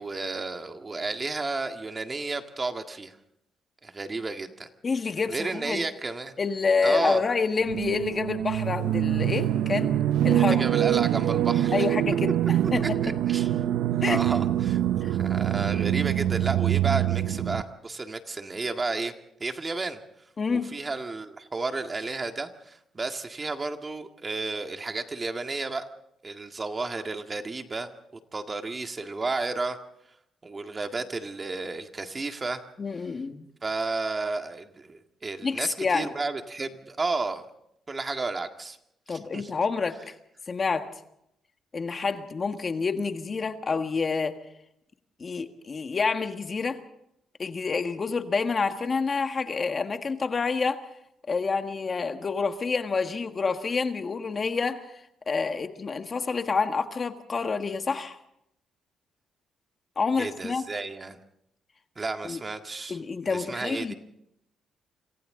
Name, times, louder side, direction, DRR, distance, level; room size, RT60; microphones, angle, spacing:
voice 1, 0.0-3.2 3.8-4.7 5.3-6.3 6.8-7.2 10.4-11.9 12.8-13.5 14.1-19.1 19.4-20.0 20.5-25.8 26.2-27.9 28.3-29.8 30.4-32.6 33.6-37.4 37.9-38.8 39.1-39.5 60.2-61.2 62.0-63.0 63.2-64.0, right 3 dB, 30° right, 6 dB, 1.9 m, -32 dB
voice 2, 4.8-5.8 6.4-9.9 10.2-10.7 11.7-12.9 14.0-14.2 15.0-15.1 20.4-20.7 32.8-33.5 35.4-36.1 39.1-40.0 40.5-40.9 41.7-44.4 45.2-46.8 47.4-50.8 51.3-54.8 55.3-58.2 59.9-60.6 62.2-62.4 62.9-63.9, left 4 dB, 35° left, 7 dB, 1.7 m, -28 dB
sound 1, 7.7-17.6, right 12 dB, 80° right, 0.8 m, -25 dB
27.5 x 26.0 x 3.8 m, 0.77 s
cardioid pair, 90°, 0 cm